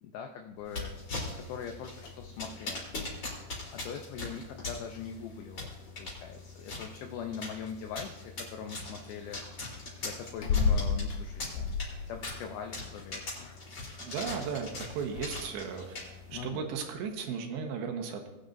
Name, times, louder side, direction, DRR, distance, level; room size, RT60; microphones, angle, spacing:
voice 1, 0.0-0.9 1.5-2.8 3.7-5.7 6.0-13.6 16.3-16.7, left 7 dB, 80° left, 4 dB, 2.2 m, -42 dB
sound 1, 0.6-17.3, left 5 dB, 65° left, 1.9 m, -38 dB
sound 2, 0.6-16.4, left 2 dB, 30° left, 4.2 m, -42 dB
voice 2, 14.0-16.0 16.3-18.3, right 6 dB, 80° right, 3 dB, 3.5 m, -36 dB
20.5 x 9.3 x 2.6 m, 1.0 s
omnidirectional pair, 5.2 m